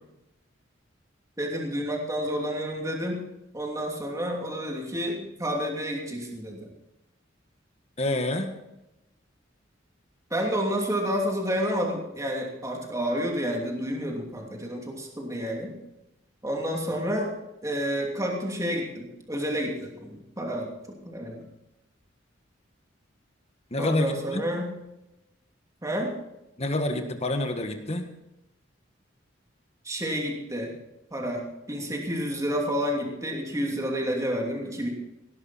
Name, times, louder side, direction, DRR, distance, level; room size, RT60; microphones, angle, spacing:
voice 1, 1.4-3.2 3.5-6.7 10.3-15.7 16.4-17.3 17.6-20.7 21.0-21.4 23.8-24.7 25.8-26.1 29.8-30.7 31.1-31.4 31.7-34.9, equal, 15° right, 0 dB, 2.8 m, -29 dB
voice 2, 8.0-8.5 23.7-24.4 26.6-28.1, left 1 dB, 35° left, 6 dB, 1.5 m, -27 dB
18.0 x 12.0 x 4.3 m, 0.90 s
head